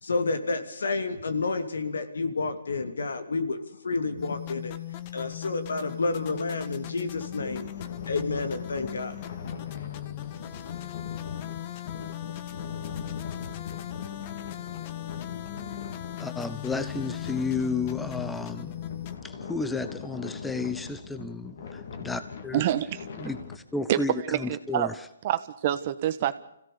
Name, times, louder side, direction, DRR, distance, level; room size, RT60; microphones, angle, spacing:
voice 1, 0.0-3.6 3.8-4.7 5.1-7.6 8.1-9.1, left 3 dB, 80° left, 2.8 m, -30 dB
sound 1, 4.2-19.2, left 14 dB, 35° left, 1.4 m, -38 dB
sound 2, 7.1-23.6, left 5 dB, 55° left, 3.2 m, -41 dB
voice 2, 16.2-18.7 19.2-22.6 23.2-25.1, left 4 dB, 5° left, 1.0 m, -32 dB
voice 3, 22.5-23.1 23.9-24.0 24.3-24.9 25.2-26.4, right 12 dB, 40° right, 1.4 m, -26 dB
26.0 x 16.5 x 6.9 m
hypercardioid pair, 155°, 0 cm